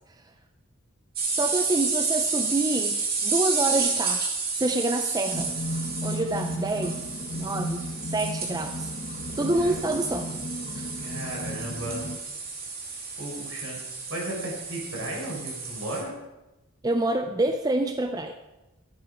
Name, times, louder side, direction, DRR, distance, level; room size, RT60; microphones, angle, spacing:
sound 1, 1.2-16.0, right 4 dB, 45° right, 2.5 m, -31 dB
voice 1, 1.3-4.3 4.6-5.5 6.0-7.0 7.3-8.9 9.4-10.2 10.7-10.9 16.8-18.4, right 2 dB, 20° right, 7 dB, 0.5 m, -27 dB
sound 2, 5.3-12.2, left 1 dB, 40° left, 0.9 m, -35 dB
voice 2, 11.0-12.1 13.2-13.8 14.1-16.1, right 1 dB, 65° right, -1 dB, 4.4 m, -35 dB
13.0 x 8.9 x 4.9 m, 1.0 s
head